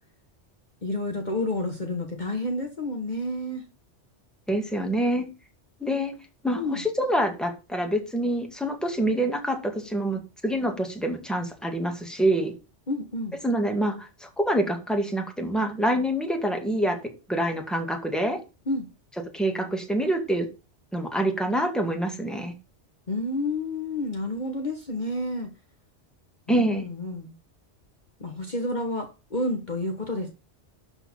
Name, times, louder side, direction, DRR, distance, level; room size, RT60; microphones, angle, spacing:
voice 1, 0.8-3.6 6.5-6.8 12.9-13.3 18.7-18.9 23.1-25.5 26.5-27.3 28.2-30.3, left 1 dB, 40° left, 4 dB, 1.6 m, -30 dB
voice 2, 4.5-5.3 5.8-6.1 6.4-12.5 13.4-17.0 17.3-18.4 19.3-20.5 20.9-22.5 26.5-26.8, right 1 dB, ahead, 3 dB, 2.3 m, -26 dB
12.0 x 4.5 x 7.2 m, 0.30 s
omnidirectional pair, 1.2 m